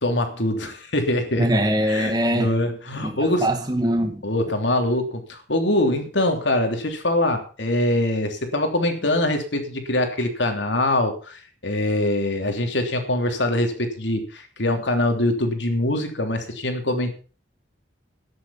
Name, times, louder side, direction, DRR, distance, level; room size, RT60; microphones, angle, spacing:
voice 1, 0.0-1.5 1.9-3.5 4.2-17.1, left 1 dB, 75° left, 3.1 m, -23 dB
voice 2, 1.4-2.5 3.0-4.2, equal, 20° right, 1.9 m, -22 dB
13.5 x 10.0 x 5.6 m
head